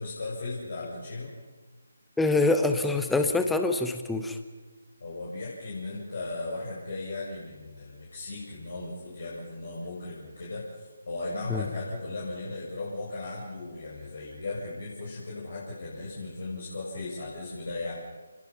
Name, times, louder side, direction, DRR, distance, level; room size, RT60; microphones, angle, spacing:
voice 1, 0.0-1.3 5.0-18.0, left 2 dB, 50° left, -6 dB, 8.0 m, -37 dB
voice 2, 2.2-4.4 11.5-11.6, left 2 dB, 5° left, 7 dB, 1.4 m, -25 dB
29.5 x 22.5 x 5.9 m, 1.3 s
figure-of-eight pair, 150°, 0 cm